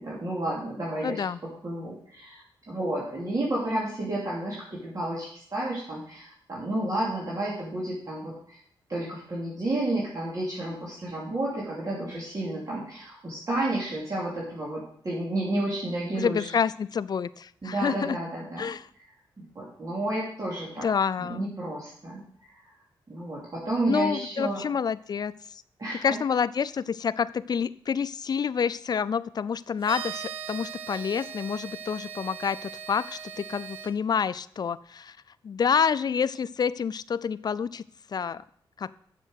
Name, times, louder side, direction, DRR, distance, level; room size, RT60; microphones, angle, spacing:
voice 1, 0.0-1.2 1.6-2.4 2.7-8.6 8.9-16.5 17.6-18.7 19.4-20.9 21.2-22.2 22.5-22.6 23.1-24.6 25.8-26.1, right 1 dB, 40° right, -6 dB, 3.0 m, -31 dB
voice 2, 1.0-1.4 16.2-18.2 18.6-18.9 20.8-21.5 23.9-25.6 26.0-35.2 35.4-37.8 38.1-38.4 38.8-38.9, left 6 dB, 50° left, 15 dB, 0.4 m, -28 dB
sound 1, 29.8-33.9, right 8 dB, 75° right, 1.3 m, -39 dB
7.7 x 6.8 x 6.4 m, 0.62 s
cardioid pair, 75°, 9 cm